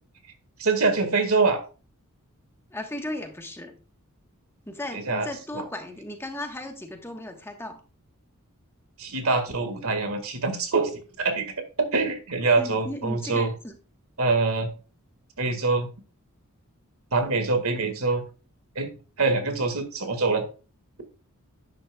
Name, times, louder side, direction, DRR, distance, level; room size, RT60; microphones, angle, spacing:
voice 1, 0.6-1.6 4.9-5.3 5.5-5.6 9.0-13.5 14.2-14.7 15.4-15.9 17.1-18.2 18.8-18.9 19.2-20.4, right 3 dB, 70° right, 7 dB, 1.9 m, -24 dB
voice 2, 2.7-3.8 4.7-7.8 12.6-13.7, left 1 dB, 10° left, 4 dB, 1.3 m, -36 dB
11.5 x 9.7 x 2.3 m, 0.34 s
head